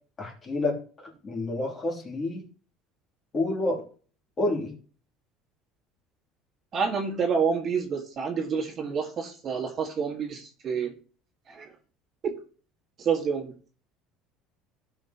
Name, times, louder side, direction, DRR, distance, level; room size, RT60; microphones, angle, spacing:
voice 1, 0.2-2.4 3.3-3.8 4.4-4.7, left 2 dB, 25° left, -1 dB, 3.0 m, -29 dB
voice 2, 6.7-10.9 11.5-11.7 12.2-12.4 13.0-13.5, right 6 dB, 35° right, 2 dB, 1.9 m, -28 dB
16.0 x 5.8 x 3.0 m, 0.39 s
cardioid pair, 150°, 0 cm